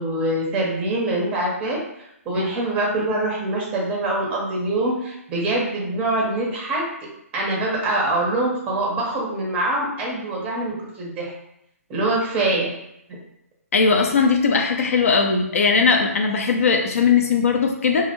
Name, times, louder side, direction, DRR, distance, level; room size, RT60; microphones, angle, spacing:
voice 1, 0.0-1.8 2.3-6.8 7.3-11.3 11.9-12.7, right 2 dB, 15° right, -2 dB, 0.5 m, -24 dB
voice 2, 13.7-18.0, left 5 dB, 65° left, 3 dB, 0.5 m, -19 dB
2.3 x 2.0 x 3.0 m, 0.80 s
hypercardioid pair, 135°, 8 cm